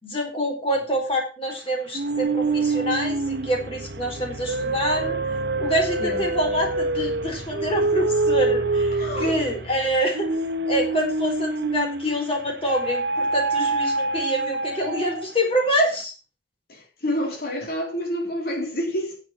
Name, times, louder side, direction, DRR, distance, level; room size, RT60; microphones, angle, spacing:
voice 1, 0.0-5.2 5.6-10.3 10.7-16.1, equal, 30° left, 4.4 m, -26 dB
sound 1, 1.9-12.1 12.7-15.4, right 3 dB, 65° right, 1.1 m, -26 dB
voice 2, 8.9-9.5 16.7-19.2, equal, 55° left, 3.7 m, -28 dB
9.9 x 8.1 x 6.1 m
head